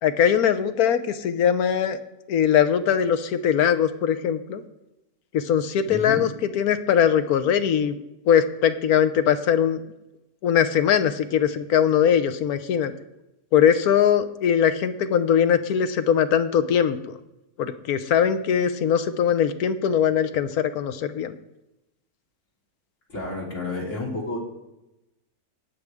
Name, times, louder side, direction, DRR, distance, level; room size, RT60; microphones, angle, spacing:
voice 1, 0.0-2.0 2.3-4.6 5.3-6.3 6.5-8.0 8.3-9.8 10.4-12.9 13.5-17.2 17.6-21.3, left 8 dB, 80° left, 11 dB, 1.3 m, -21 dB
voice 2, 5.9-6.2 23.1-24.4, left 2 dB, 55° left, -4 dB, 3.4 m, -30 dB
19.0 x 6.4 x 3.6 m, 0.93 s
omnidirectional pair, 1.6 m